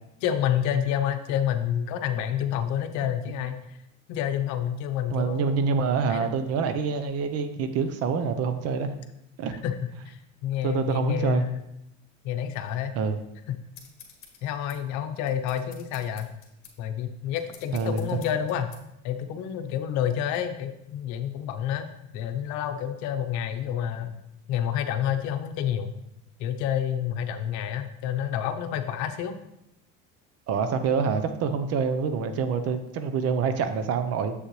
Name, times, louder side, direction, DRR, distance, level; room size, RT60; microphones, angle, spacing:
voice 1, 0.2-3.6 4.1-5.7 6.1-6.3 9.6-9.8 10.1-11.6 12.2-13.0 13.5-13.6 14.4-16.3 16.8-18.7 19.0-24.1 24.5-25.9 26.4-29.4, left 9 dB, 70° left, 8 dB, 0.8 m, -29 dB
voice 2, 5.1-8.9 9.4-9.5 10.6-11.5 12.9-13.2 17.7-18.0 30.5-34.3, right 5 dB, 55° right, 9 dB, 0.8 m, -26 dB
sound 1, 13.7-18.8, left 7 dB, 45° left, 1.5 m, -51 dB
7.4 x 6.6 x 3.2 m, 0.82 s
cardioid pair, 125°, 30 cm